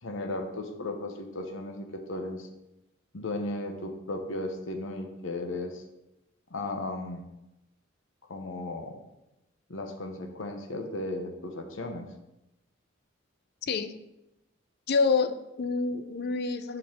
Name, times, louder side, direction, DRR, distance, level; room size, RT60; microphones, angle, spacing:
voice 1, 0.0-2.5 3.1-5.8 6.5-7.2 8.3-9.0 9.7-12.1, left 2 dB, 70° left, 4 dB, 0.9 m, -35 dB
voice 2, 13.6-13.9 14.9-16.8, left 4 dB, 55° left, 10 dB, 0.5 m, -27 dB
5.4 x 4.8 x 6.2 m, 0.93 s
head